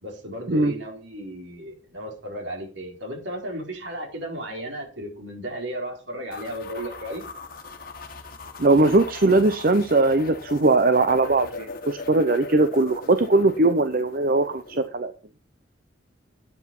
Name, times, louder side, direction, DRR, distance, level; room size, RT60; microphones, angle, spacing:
voice 1, 0.0-7.2, right 1 dB, 70° right, 1 dB, 4.4 m, -34 dB
sound 1, 6.3-14.9, left 3 dB, 50° left, 1.6 m, -39 dB
voice 2, 8.6-15.1, right 2 dB, 50° right, 9 dB, 0.8 m, -20 dB
9.7 x 8.4 x 6.0 m, 0.37 s
head